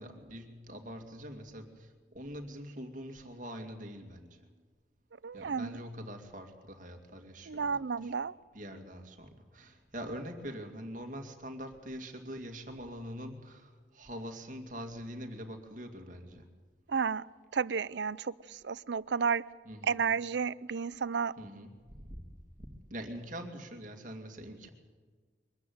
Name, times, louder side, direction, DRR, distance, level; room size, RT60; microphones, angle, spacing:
voice 1, 0.0-4.5 5.3-8.1 8.5-16.5 19.7-20.0 21.4-22.2 22.9-24.7, equal, 45° right, 4 dB, 2.4 m, -44 dB
voice 2, 5.2-5.8 7.5-8.3 16.9-17.2 17.5-19.4 19.8-21.3, right 6 dB, 80° right, 19 dB, 0.5 m, -32 dB
23.0 x 14.0 x 9.4 m, 1.4 s
head